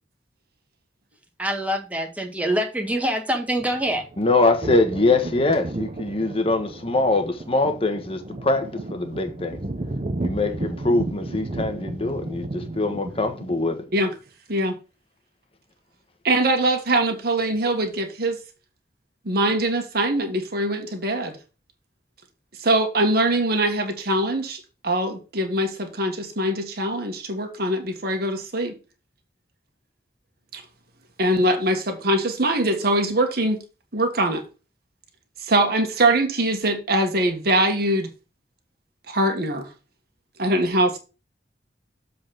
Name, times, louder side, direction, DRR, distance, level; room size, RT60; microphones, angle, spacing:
voice 1, 1.4-4.0, equal, 10° right, 1.5 m, -25 dB
sound 1, 3.6-14.0, right 2 dB, 35° right, 0.7 m, -33 dB
voice 2, 4.2-9.6 10.2-13.8, left 2 dB, 35° left, 1.3 m, -23 dB
voice 3, 16.2-18.4 19.3-21.4 22.6-28.7 30.5-30.6 31.2-33.6 33.9-34.4 35.4-38.1 39.1-39.7 40.4-41.0, right 1 dB, 60° right, 1.6 m, -22 dB
7.5 x 4.1 x 5.9 m
head